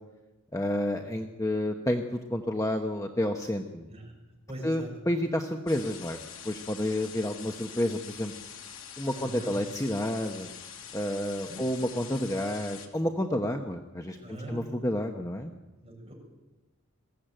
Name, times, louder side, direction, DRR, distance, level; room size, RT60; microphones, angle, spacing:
voice 1, 0.5-3.9 4.6-6.2 6.4-8.3 9.0-10.5 10.9-15.5, left 1 dB, 15° left, 4 dB, 1.0 m, -30 dB
voice 2, 4.5-4.9 9.1-9.5 11.5-11.6 14.2-14.6 15.8-16.1, right 1 dB, 25° right, 0 dB, 6.9 m, -41 dB
sound 1, 5.7-12.9, left 8 dB, 65° left, 2.5 m, -45 dB
21.5 x 16.0 x 9.1 m, 1.1 s
head